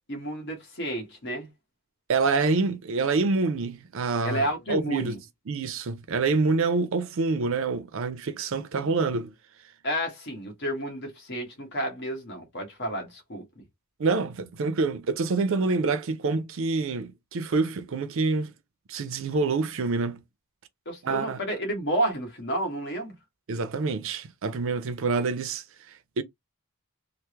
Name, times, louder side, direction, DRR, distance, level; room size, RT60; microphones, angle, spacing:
voice 1, 0.1-1.5 4.2-5.2 9.8-13.6 20.8-23.1, right 1 dB, 55° left, 1.3 m, -31 dB
voice 2, 2.1-5.2 5.5-9.3 14.0-18.5 18.9-20.2 21.0-21.4 23.5-26.2, right 4 dB, 60° right, 0.5 m, -27 dB
3.3 x 2.0 x 3.0 m
head